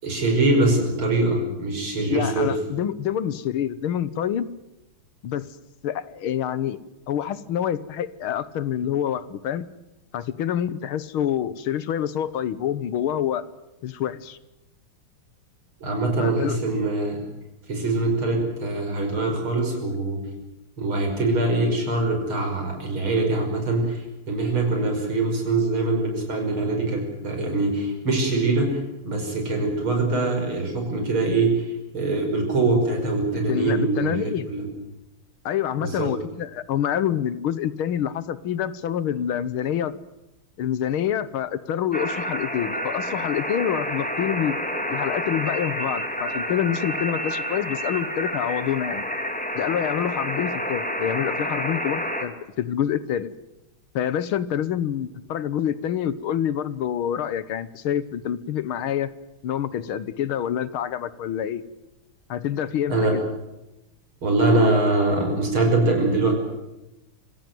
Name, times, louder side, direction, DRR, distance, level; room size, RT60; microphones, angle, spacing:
voice 1, 0.0-2.5 15.8-17.2 17.7-20.2 20.8-28.7 29.0-34.6 35.8-36.1 62.9-63.2 64.2-66.3, right 2 dB, 70° right, 3 dB, 6.4 m, -23 dB
voice 2, 2.1-4.5 5.2-5.5 5.8-6.8 7.1-9.7 10.1-13.4 13.8-14.4 16.2-16.6 33.5-34.5 35.5-40.0 40.6-44.6 44.9-49.1 49.6-53.3 53.9-59.1 59.4-61.6 62.3-63.2, left 10 dB, 75° left, 16 dB, 1.9 m, -27 dB
sound 1, 41.9-52.2, equal, 5° left, 2.4 m, -29 dB
25.5 x 16.5 x 9.3 m, 0.96 s
omnidirectional pair, 2.4 m